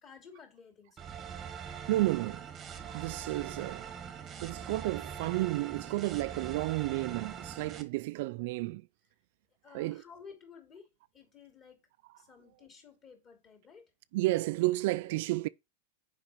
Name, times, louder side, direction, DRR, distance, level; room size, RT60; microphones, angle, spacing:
voice 1, 0.0-1.1 9.6-11.9 12.2-13.9, left 6 dB, 25° left, 2.8 m, -54 dB
sound 1, 1.0-7.8, right 7 dB, 15° right, 1.1 m, -43 dB
voice 2, 1.9-2.5 2.8-3.9 4.4-8.9 9.7-10.0 14.1-15.5, right 19 dB, 55° right, 0.3 m, -32 dB
7.3 x 5.2 x 4.9 m
supercardioid pair, 160°, 0 cm